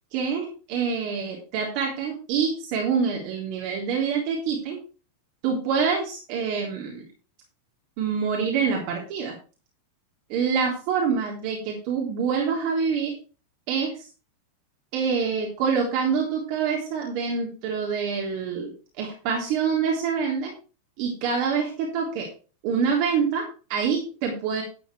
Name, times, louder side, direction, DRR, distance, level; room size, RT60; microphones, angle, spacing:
voice 1, 0.1-4.8 5.4-7.0 8.0-9.3 10.3-13.1 13.7-14.1 14.9-20.5 21.0-22.3 22.6-24.6, right 6 dB, 45° right, -1 dB, 3.5 m, -26 dB
11.5 x 10.5 x 3.3 m, 0.35 s
figure-of-eight pair, 90°, 0 cm